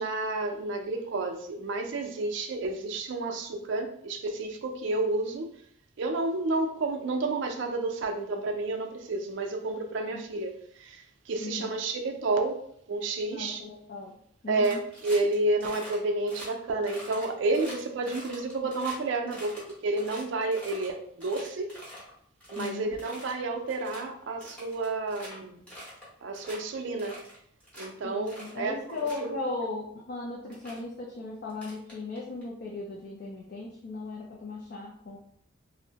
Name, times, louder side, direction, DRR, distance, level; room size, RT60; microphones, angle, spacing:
voice 1, 0.0-5.5 6.0-13.6 14.5-21.8 22.5-25.6 26.2-27.2 27.8-29.7, right 2 dB, 65° right, 0.4 m, -30 dB
voice 2, 11.4-11.8 13.3-14.1 14.4-14.8 22.6-22.9 28.0-35.2, left 3 dB, 45° left, 0.4 m, -37 dB
sound 1, 14.6-15.3 15.6-16.0 16.3-16.5 16.8-19.0 19.3-20.9 21.2-22.1 22.4-22.7 23.0-23.4 23.7-24.0 24.4-25.3 25.7-26.1 26.3-26.6 27.0-27.9 28.3-28.5 28.9-29.3 30.1-30.2 30.5-30.8 31.5-32.4, equal, 5° left, 0.8 m, -45 dB
2.6 x 2.0 x 2.8 m
head